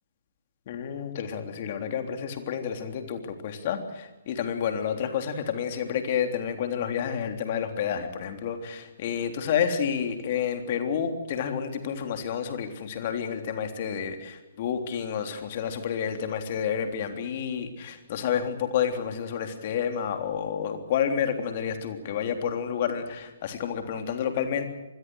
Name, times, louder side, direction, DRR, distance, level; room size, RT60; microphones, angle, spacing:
voice 1, 0.7-24.7, left 8 dB, 40° left, 6 dB, 3.5 m, -30 dB
26.5 x 21.0 x 6.4 m, 1.1 s
figure-of-eight pair, 130°, 0 cm